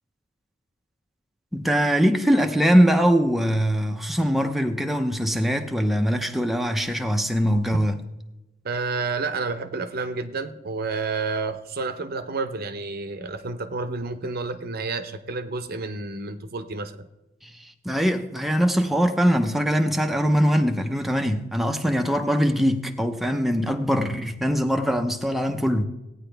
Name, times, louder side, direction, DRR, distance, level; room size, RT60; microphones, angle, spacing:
voice 1, 1.5-8.0 17.4-17.5 17.8-25.8, equal, ahead, 0.6 m, -22 dB
voice 2, 8.6-17.1, right 4 dB, 50° right, 0.7 m, -30 dB
16.5 x 9.5 x 3.4 m
head